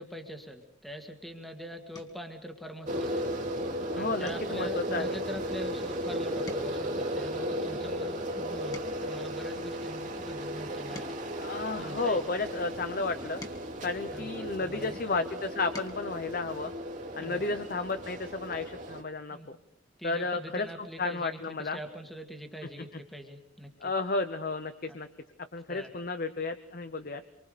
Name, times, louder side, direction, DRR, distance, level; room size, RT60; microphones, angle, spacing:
voice 1, 0.0-3.3 4.0-11.2 11.8-12.2 14.1-15.0 17.2-17.6 19.3-19.5 20.0-23.9 24.9-25.0 25.7-26.0, equal, ahead, 4 dB, 2.1 m, -43 dB
sound 1, 1.9-2.3 2.8-3.2 3.5-3.7 4.2-6.0 6.3-9.2 9.9-12.3 13.0-14.8 15.4-16.1 17.5-17.6 17.9-18.1, left 1 dB, 20° left, 2.1 m, -51 dB
sound 2, 2.9-19.0, equal, 40° right, 2.6 m, -35 dB
voice 2, 3.9-5.2 11.4-13.4 13.8-16.7 17.1-19.6 20.0-20.7 21.0-21.8 23.8-25.1 25.5-27.2, left 3 dB, 45° left, 9 dB, 1.0 m, -32 dB
26.0 x 24.5 x 5.1 m, 0.72 s
head